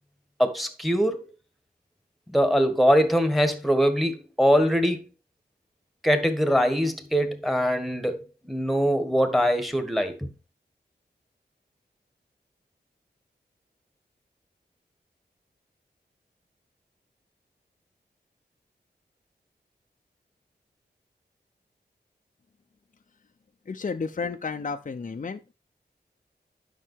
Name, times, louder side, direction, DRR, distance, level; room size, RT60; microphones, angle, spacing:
voice 1, 0.4-1.2 2.3-5.0 6.0-10.3, equal, ahead, 1.7 m, -23 dB
voice 2, 23.7-25.5, left 4 dB, 50° left, 0.7 m, -32 dB
11.0 x 5.7 x 4.7 m
wide cardioid pair, 100°, 17 cm